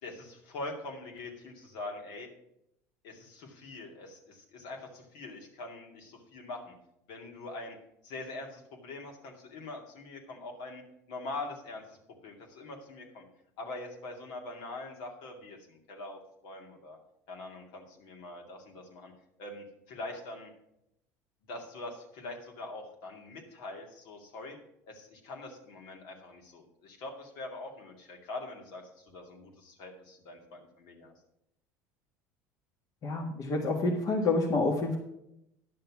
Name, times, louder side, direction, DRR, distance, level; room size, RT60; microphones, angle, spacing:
voice 1, 0.0-2.3 3.0-6.7 7.1-7.8 8.0-10.8 11.1-13.2 13.6-17.0 17.3-19.1 19.4-20.5 21.5-24.6 24.9-31.1, left 2 dB, 70° left, 1 dB, 2.4 m, -43 dB
voice 2, 33.0-35.0, left 3 dB, 45° left, 1 dB, 1.6 m, -28 dB
10.5 x 6.6 x 6.0 m, 0.80 s
supercardioid pair, 90°, 8 cm